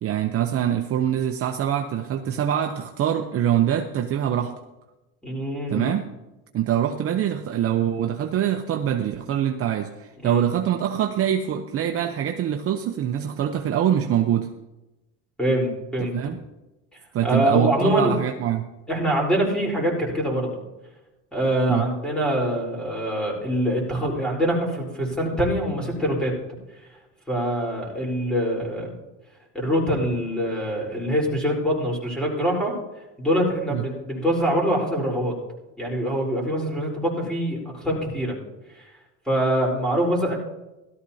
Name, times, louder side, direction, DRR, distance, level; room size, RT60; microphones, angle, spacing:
voice 1, 0.0-4.5 5.7-6.0 6.5-14.5 16.1-16.4 17.1-18.7 21.7-21.8 33.7-33.8, right 10 dB, 40° right, 4 dB, 0.8 m, -24 dB
voice 2, 5.2-5.9 10.2-10.4 15.4-16.2 17.2-18.2 18.9-20.7 21.3-26.3 27.3-29.0 29.5-32.7 33.2-35.4 35.8-38.4 38.8-38.9 39.3-40.4, equal, ahead, -2 dB, 4.0 m, -24 dB
17.5 x 13.0 x 2.8 m, 1.0 s
cardioid pair, 125°, 35 cm